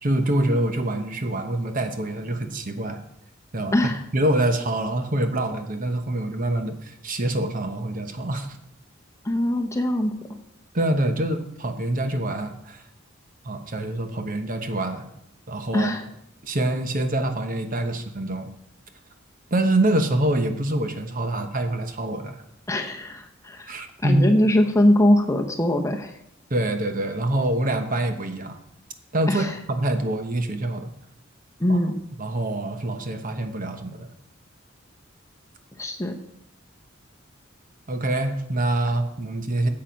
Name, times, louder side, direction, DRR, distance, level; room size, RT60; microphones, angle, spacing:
voice 1, 0.0-3.0 3.5-3.7 4.1-8.6 10.7-12.8 13.4-15.0 15.5-15.9 16.4-18.5 19.5-22.4 23.7-24.3 26.5-28.6 29.1-30.9 31.7-31.8 32.2-34.1 37.9-39.7, right 1 dB, 45° right, 7 dB, 0.9 m, -25 dB
voice 2, 3.7-4.0 9.2-10.1 15.7-16.0 22.7-26.1 29.3-29.6 31.6-32.0 35.8-36.2, left 1 dB, 15° left, 4 dB, 0.8 m, -22 dB
8.9 x 7.7 x 5.2 m, 0.76 s
head